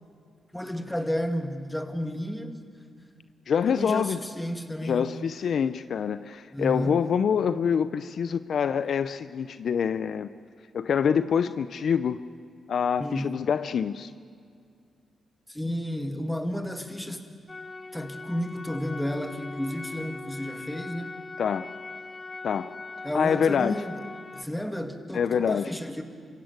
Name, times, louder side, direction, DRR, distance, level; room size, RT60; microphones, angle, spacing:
voice 1, 0.5-2.6 3.7-5.1 6.5-7.0 13.0-13.3 15.5-17.3 17.9-21.1 23.0-24.0 24.3-26.0, equal, 5° left, 6 dB, 2.3 m, -32 dB
voice 2, 3.5-4.2 4.8-10.3 10.7-12.2 12.7-14.1 21.4-21.7 22.4-22.7 23.1-23.7 25.1-25.7, left 7 dB, 70° left, 13 dB, 0.6 m, -26 dB
sound 1, 17.5-24.4, left 3 dB, 30° left, 1.0 m, -41 dB
26.5 x 16.0 x 8.1 m, 2.2 s
supercardioid pair, 55°, 0 cm